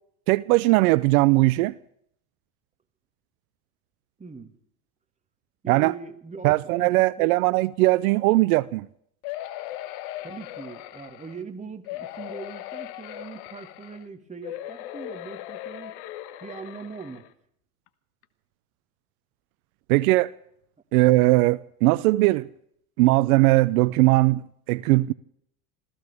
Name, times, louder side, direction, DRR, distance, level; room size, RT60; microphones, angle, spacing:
voice 1, 0.3-1.7 5.7-5.9 6.4-8.9 19.9-20.3 20.9-22.5 23.0-25.1, right 20 dB, 75° right, 0.7 m, -19 dB
voice 2, 4.2-4.5 5.6-7.3 10.2-15.9 16.4-17.3, right 5 dB, 15° right, 1.9 m, -40 dB
sound 1, 9.2-11.4 11.9-14.0 14.4-17.3 17.9-18.0 18.2-18.3, left 14 dB, 65° left, 1.5 m, -38 dB
27.0 x 15.5 x 3.5 m
hypercardioid pair, 95°, 44 cm